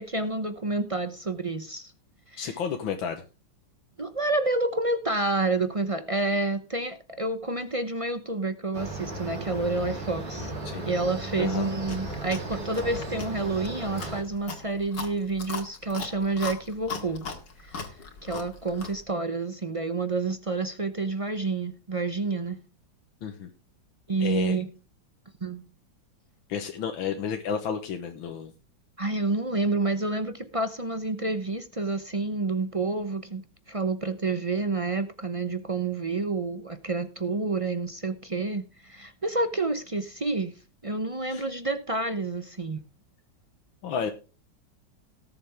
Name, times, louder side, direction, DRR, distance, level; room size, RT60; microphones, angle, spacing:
voice 1, 0.0-1.9 2.3-2.6 4.0-10.5 10.9-17.3 17.6-17.9 18.2-22.6 24.1-24.7 25.4-25.6 29.0-40.5 40.8-42.8, right 3 dB, 40° right, 0.4 m, -29 dB
voice 2, 2.4-3.2 10.7-10.9 11.4-11.7 23.2-23.5 24.2-24.6 26.5-28.5 41.3-41.5 43.8-44.1, left 7 dB, 85° left, 1.9 m, -31 dB
sound 1, 8.7-14.2, right 2 dB, 60° right, 3.9 m, -36 dB
Chewing mastication, 11.8-19.0, left 5 dB, 65° left, 2.7 m, -39 dB
18.5 x 7.5 x 3.4 m
omnidirectional pair, 2.1 m